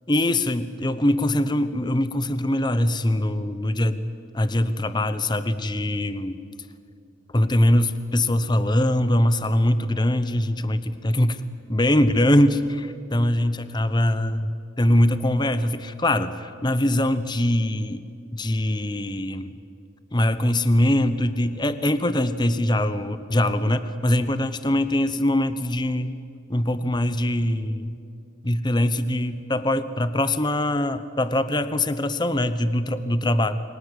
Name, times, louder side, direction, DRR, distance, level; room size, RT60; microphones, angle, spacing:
voice 1, 0.1-4.1 4.3-6.4 7.3-11.4 11.7-14.5 14.8-18.0 18.3-19.6 20.1-26.1 26.5-27.9 28.4-33.6, left 1 dB, 20° left, 12 dB, 0.9 m, -22 dB
29.0 x 24.0 x 8.2 m, 2.4 s
head